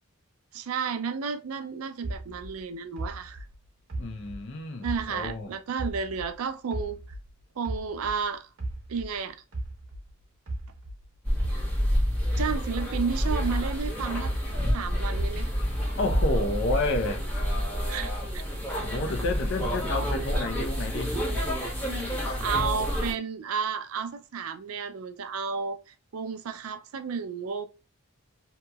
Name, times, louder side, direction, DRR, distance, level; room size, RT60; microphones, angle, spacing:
voice 1, 0.5-3.4 4.8-7.0 7.6-8.5 8.9-9.4 12.4-14.3 14.7-15.5 17.9-18.4 22.4-25.8 26.1-27.7, right 5 dB, 80° right, 0.4 m, -32 dB
sound 1, 2.0-5.4 5.8-8.2 8.6-12.9 13.3-15.7 16.1-16.8, right 2 dB, 65° right, 0.9 m, -37 dB
voice 2, 4.0-5.5 16.0-17.3 18.8-21.1, left 2 dB, 55° left, 0.6 m, -30 dB
sound 2, 11.2-23.1, equal, 5° left, 1.1 m, -28 dB
2.8 x 2.8 x 2.3 m
head